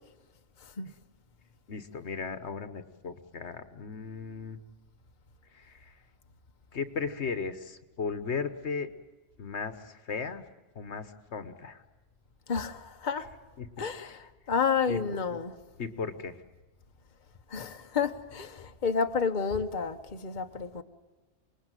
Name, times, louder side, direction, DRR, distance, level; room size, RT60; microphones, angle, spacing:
voice 1, 0.6-0.9 12.5-13.3 13.8-15.5 17.5-20.8, left 5 dB, 45° left, 1.2 m, -30 dB
voice 2, 1.7-4.6 5.5-6.0 6.7-8.9 9.4-10.4 10.7-11.8 13.6-14.1 14.9-15.0 15.8-16.4, left 5 dB, 75° left, 1.5 m, -36 dB
27.0 x 21.0 x 9.1 m
omnidirectional pair, 1.2 m